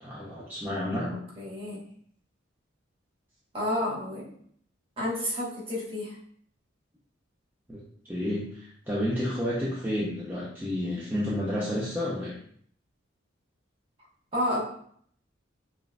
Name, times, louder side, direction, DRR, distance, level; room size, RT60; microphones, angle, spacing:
voice 1, 0.0-1.1 7.7-7.8 8.1-12.3, left 1 dB, 10° right, -7 dB, 0.6 m, -30 dB
voice 2, 1.4-1.8 3.5-4.3 5.0-6.1 14.3-14.6, left 1 dB, 30° right, -6 dB, 1.2 m, -30 dB
5.5 x 2.5 x 2.2 m, 0.62 s
head